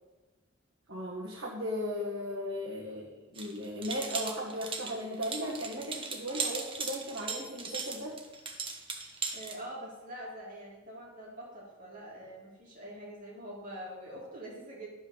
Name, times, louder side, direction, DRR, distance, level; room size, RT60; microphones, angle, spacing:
voice 1, 0.9-8.2, equal, 75° right, -4 dB, 1.8 m, -36 dB
sound 1, 3.4-9.6, right 4 dB, 25° right, 1.2 m, -38 dB
voice 2, 9.3-14.9, right 1 dB, 40° right, -5 dB, 3.8 m, -44 dB
12.0 x 5.4 x 6.8 m, 1.2 s
head